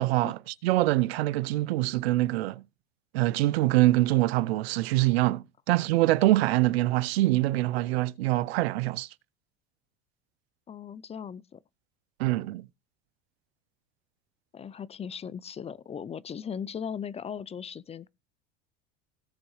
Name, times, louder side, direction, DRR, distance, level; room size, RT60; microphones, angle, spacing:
voice 1, 0.0-2.6 3.1-9.1 12.2-12.7, right 17 dB, 85° right, 0.6 m, -24 dB
voice 2, 10.7-11.6 14.5-18.1, left 7 dB, 20° left, 0.5 m, -38 dB
17.5 x 6.9 x 3.2 m
supercardioid pair, 105°, 30 cm